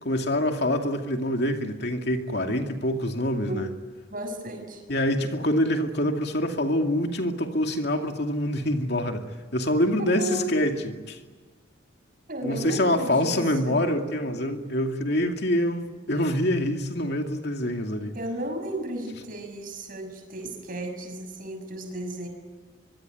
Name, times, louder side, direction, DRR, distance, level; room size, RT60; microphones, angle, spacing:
voice 1, 0.0-3.7 4.9-9.2 9.5-11.2 12.4-18.1, left 1 dB, 55° left, 4 dB, 2.4 m, -25 dB
voice 2, 4.1-4.8 10.0-10.6 12.3-13.8 18.1-22.3, right 1 dB, 45° right, 6 dB, 6.5 m, -34 dB
25.0 x 23.5 x 9.4 m, 1.4 s
head